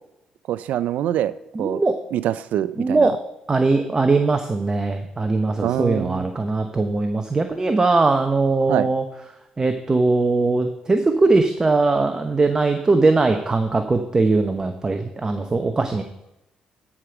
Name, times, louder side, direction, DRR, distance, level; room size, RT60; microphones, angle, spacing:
voice 1, 0.5-1.3 1.6-1.8 2.1-3.1 5.6-6.3 8.7-8.9, right 11 dB, 80° right, 16 dB, 0.4 m, -24 dB
voice 2, 1.5-1.9 2.8-3.1 3.5-9.0 9.6-16.0, right 3 dB, 25° right, 6 dB, 0.9 m, -20 dB
12.0 x 5.1 x 5.9 m, 0.88 s
cardioid pair, 80°, 3 cm